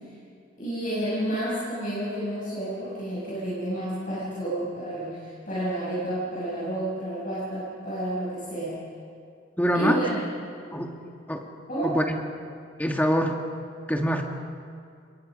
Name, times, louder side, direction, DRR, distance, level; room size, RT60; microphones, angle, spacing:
voice 1, 0.6-8.8 9.7-10.2 11.7-11.9, right 1 dB, 45° left, -9 dB, 7.4 m, -30 dB
voice 2, 9.6-10.0 10.7-11.0 11.3-11.5 11.8-12.2 12.8-13.4 13.9-14.2, equal, 10° left, 2 dB, 1.7 m, -24 dB
27.5 x 22.0 x 5.2 m, 2.4 s
head